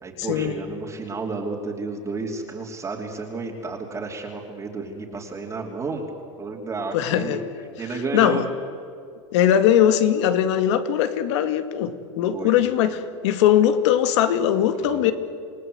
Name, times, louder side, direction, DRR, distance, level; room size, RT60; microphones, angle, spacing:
voice 1, 0.0-6.0 6.4-7.4 7.8-8.4 12.3-12.6 14.8-15.1, right 3 dB, 20° right, 0 dB, 3.1 m, -31 dB
voice 2, 6.9-7.4 8.1-8.4 9.3-15.1, left 10 dB, 65° left, 10 dB, 2.2 m, -20 dB
28.5 x 18.5 x 7.9 m, 2.4 s
supercardioid pair, 130°, 16 cm